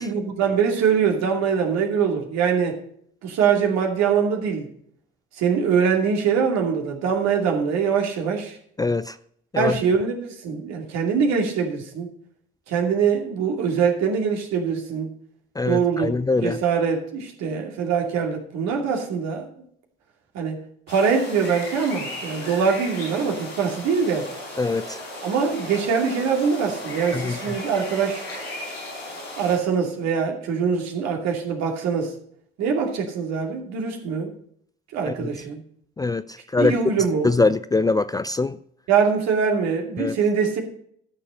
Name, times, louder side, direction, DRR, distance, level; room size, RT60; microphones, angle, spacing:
voice 1, 0.0-2.8 3.2-4.7 5.4-8.6 9.5-12.1 12.7-15.1 15.7-16.1 16.4-19.5 20.3-20.6 20.9-24.3 25.2-28.3 29.4-32.1 32.6-34.3 34.9-35.6 36.6-37.3 38.9-40.6, right 6 dB, 60° right, 2 dB, 2.7 m, -23 dB
voice 2, 8.8-9.2 9.5-9.8 15.6-16.6 24.6-25.0 27.1-27.4 35.0-35.1 36.0-36.2 36.5-36.7 37.2-38.6 40.0-40.2, left 3 dB, 15° left, 14 dB, 0.4 m, -22 dB
sound 1, 20.9-29.6, left 1 dB, 90° left, 5.1 m, -35 dB
13.0 x 6.7 x 5.4 m, 0.64 s
hypercardioid pair, 55°, 30 cm